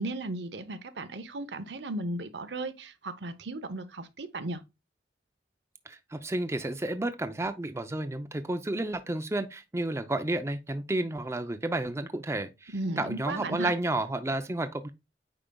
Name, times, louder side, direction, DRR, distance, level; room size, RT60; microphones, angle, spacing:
voice 1, 0.0-4.6 12.7-13.7, right 2 dB, 75° right, 0.8 m, -35 dB
voice 2, 5.9-14.9, right 2 dB, 15° right, 0.5 m, -31 dB
8.7 x 4.9 x 2.3 m
head